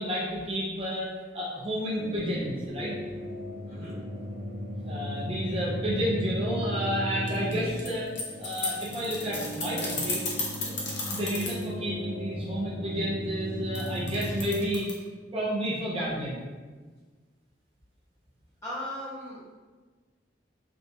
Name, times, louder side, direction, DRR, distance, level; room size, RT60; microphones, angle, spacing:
voice 1, 0.0-2.9 4.8-10.2 10.6-14.9 15.3-16.4, equal, 30° right, -6 dB, 0.6 m, -31 dB
sound 1, 1.9-14.5, equal, 65° right, 0.8 m, -36 dB
voice 2, 3.7-4.0 18.6-19.5, left 1 dB, 15° left, -9 dB, 1.1 m, -38 dB
sound 2, 7.3-11.6 13.7-14.9, left 3 dB, 75° left, 0.8 m, -33 dB
3.4 x 2.8 x 2.7 m, 1.4 s
head